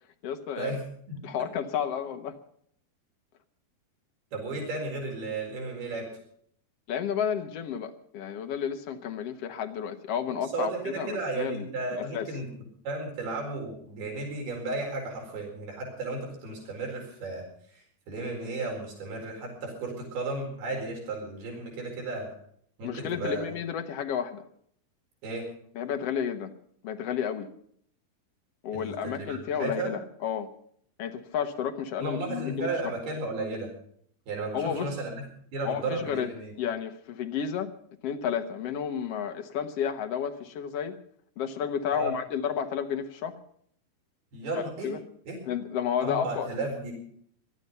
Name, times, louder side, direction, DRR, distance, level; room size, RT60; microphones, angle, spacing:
voice 1, 0.2-0.8 1.2-2.4 6.9-12.3 22.8-24.4 25.7-26.5 26.8-27.5 28.6-30.5 31.0-33.0 34.5-34.9 35.6-36.3 36.6-37.7 38.0-40.9 41.4-43.3 44.5-45.1 45.5-46.5, left 8 dB, 75° left, 6 dB, 1.4 m, -31 dB
voice 2, 4.3-6.1 10.3-12.5 12.8-17.4 17.7-22.3 22.8-23.5 25.2-25.5 28.7-29.9 32.0-33.7 34.3-35.2 35.5-36.5 41.9-42.1 44.3-44.9 45.3-45.4 46.0-46.9, right 2 dB, 85° right, 0 dB, 6.4 m, -34 dB
19.0 x 12.5 x 5.5 m, 0.63 s
omnidirectional pair, 4.4 m